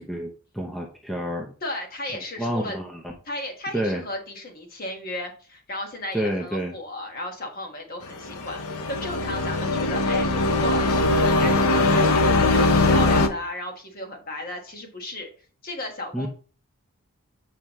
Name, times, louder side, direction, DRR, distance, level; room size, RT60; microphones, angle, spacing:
voice 1, 0.0-1.5 2.4-3.1 3.7-4.0 6.1-6.8 16.1-16.3, right 1 dB, ahead, 0 dB, 0.6 m, -29 dB
voice 2, 1.6-2.8 3.3-15.3 15.6-16.3, left 1 dB, 40° left, 3 dB, 1.4 m, -34 dB
sound 1, 8.2-13.3, left 2 dB, 80° left, 0.7 m, -21 dB
7.2 x 4.8 x 3.0 m, 0.39 s
head